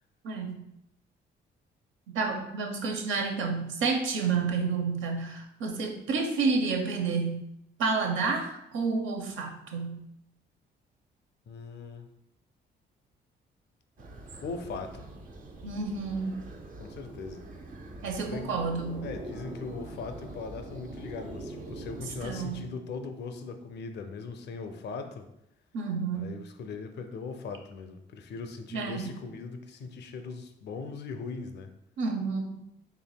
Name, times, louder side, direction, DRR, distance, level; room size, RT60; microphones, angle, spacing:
voice 1, 0.2-0.6 2.1-7.4 7.8-10.0 15.6-16.4 18.0-19.1 22.2-22.6 25.7-26.4 28.7-29.1 32.0-32.6, right 4 dB, 80° right, 4 dB, 0.7 m, -30 dB
voice 2, 11.5-12.1 14.4-15.0 16.8-17.4 18.3-18.5 19.0-25.3 26.1-31.7, left 4 dB, 60° left, 7 dB, 0.5 m, -39 dB
sound 1, 14.0-22.6, right 2 dB, 45° right, 0.6 m, -43 dB
4.5 x 3.1 x 2.2 m, 0.80 s
cardioid pair, 90°, 20 cm